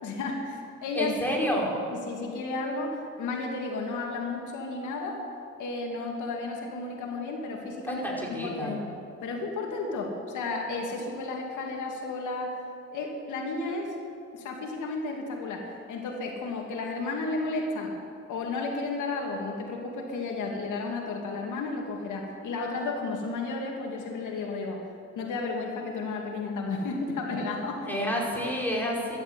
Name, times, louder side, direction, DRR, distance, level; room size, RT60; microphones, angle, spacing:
voice 1, 0.0-1.2 1.9-5.2 5.6-12.6 12.9-13.9 14.3-18.0 18.3-24.9 25.2-27.9, left 3 dB, 80° left, 0 dB, 2.6 m, -33 dB
voice 2, 0.9-1.7 7.9-8.7 27.9-29.2, equal, 5° left, -3 dB, 4.9 m, -29 dB
13.0 x 12.0 x 8.2 m, 2.5 s
cardioid pair, 90°, 30 cm